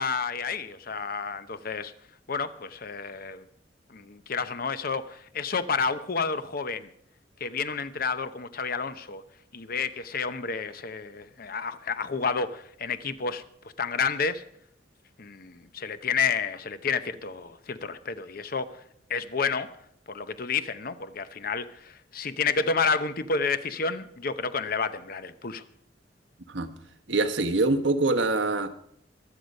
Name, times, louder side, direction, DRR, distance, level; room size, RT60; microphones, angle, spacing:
voice 1, 0.0-1.9 2.3-3.4 3.9-6.9 7.4-9.2 9.5-13.4 13.8-14.4 15.2-18.8 19.1-19.7 20.1-25.6, left 5 dB, 55° left, 0.8 m, -30 dB
voice 2, 27.1-28.7, right 2 dB, 80° right, 1.2 m, -24 dB
23.0 x 8.0 x 5.3 m
head